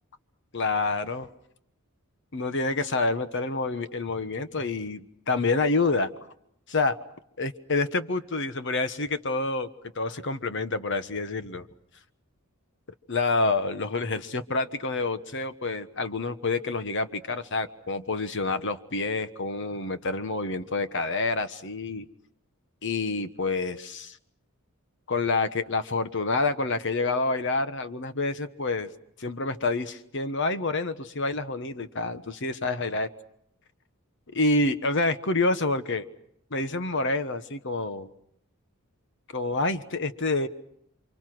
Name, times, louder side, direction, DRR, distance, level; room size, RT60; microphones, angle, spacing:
voice 1, 0.5-1.3 2.3-6.1 6.7-7.0 7.4-9.7 9.9-11.7 13.1-22.0 22.8-24.2 25.1-28.9 29.2-33.1 34.3-36.1 36.5-38.1 39.3-40.5, left 3 dB, 60° left, 10 dB, 1.3 m, -28 dB
30.0 x 25.5 x 6.2 m, 0.74 s
head